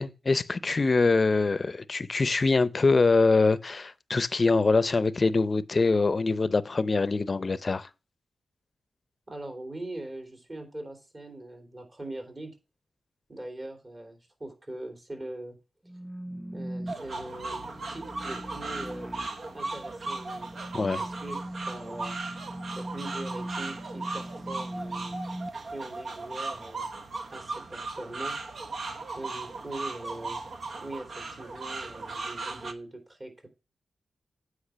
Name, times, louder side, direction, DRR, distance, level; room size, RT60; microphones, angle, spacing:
voice 1, 0.0-7.9 20.7-21.0, left 3 dB, 45° left, 0.6 m, -24 dB
voice 2, 9.3-12.5 13.3-15.6 16.5-19.1 19.5-20.5 21.0-22.2 22.8-25.2 25.7-26.9 27.3-28.4 29.1-30.4 30.8-33.5, right 1 dB, 35° right, 3.3 m, -41 dB
sound 1, 15.9-25.5, right 1 dB, ahead, 0.6 m, -40 dB
sound 2, 16.9-32.7, right 3 dB, 60° right, 1.0 m, -37 dB
8.8 x 4.7 x 5.9 m
cardioid pair, 60°, 0 cm